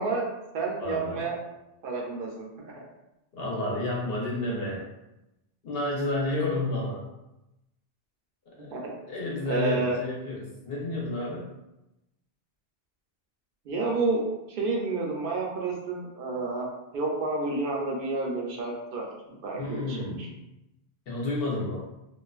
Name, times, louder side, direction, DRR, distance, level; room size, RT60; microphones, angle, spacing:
voice 1, 0.0-1.4 1.8-2.9 8.7-8.9 9.5-10.0 13.7-16.7 16.9-20.3, right 3 dB, 65° right, -1 dB, 0.7 m, -30 dB
voice 2, 0.8-1.3 3.3-4.9 5.6-7.0 8.5-11.5 19.6-20.3 21.1-21.8, left 2 dB, 70° left, -4 dB, 1.0 m, -31 dB
2.5 x 2.4 x 2.3 m, 0.92 s
omnidirectional pair, 1.0 m